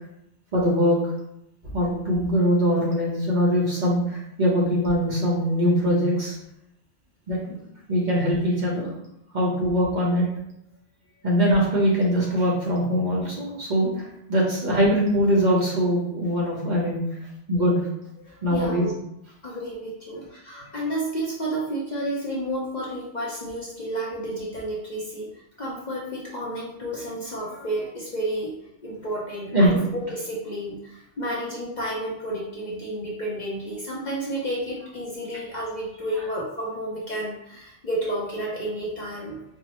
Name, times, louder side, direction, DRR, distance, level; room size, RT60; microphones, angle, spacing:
voice 1, 0.5-1.0 1.7-6.4 7.3-7.6 7.9-8.9 9.3-10.3 11.2-17.0 17.5-17.8 18.4-18.9 29.5-29.8, equal, 45° right, -5 dB, 0.9 m, -22 dB
voice 2, 18.3-18.9 19.4-25.3 25.6-28.6 28.8-39.4, right 1 dB, 50° left, -5 dB, 0.6 m, -31 dB
4.3 x 2.0 x 2.9 m, 0.79 s
omnidirectional pair, 1.2 m